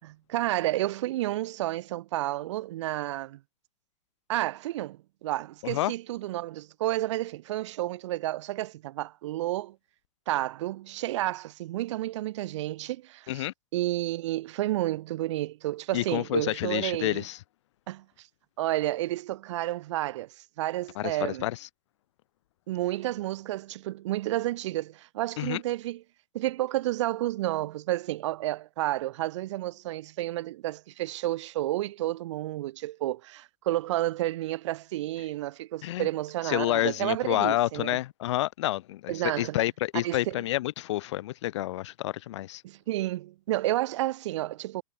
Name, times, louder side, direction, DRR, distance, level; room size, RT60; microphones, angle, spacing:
voice 1, 0.0-3.4 4.3-9.8 10.3-13.5 13.7-17.2 17.9-18.0 18.6-20.3 20.6-21.5 22.7-26.0 26.3-38.0 39.1-39.6 40.0-40.3 42.6-44.8, right 15 dB, 50° right, 2.9 m, -31 dB
voice 2, 15.9-17.4 20.9-21.7 25.4-25.6 35.8-36.1 36.4-42.6, left 15 dB, 45° left, 1.7 m, -29 dB
supercardioid pair, 180°, 20 cm